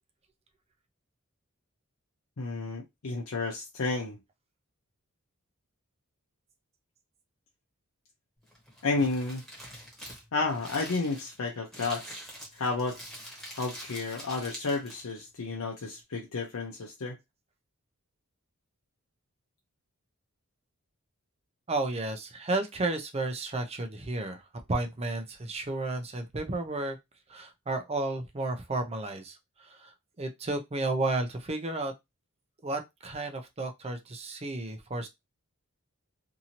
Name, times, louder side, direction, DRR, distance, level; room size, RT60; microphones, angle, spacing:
voice 1, 2.4-4.2 8.8-9.4 10.3-12.0 12.5-13.0 13.6-17.2, left 3 dB, 80° left, 0.7 m, -31 dB
Crumpling crinkling, 8.4-15.2, equal, ahead, 1.1 m, -45 dB
voice 2, 21.7-24.4 24.7-27.0 27.3-29.9 30.2-31.9 32.6-35.1, right 2 dB, 30° right, 0.5 m, -32 dB
2.7 x 2.6 x 2.8 m
head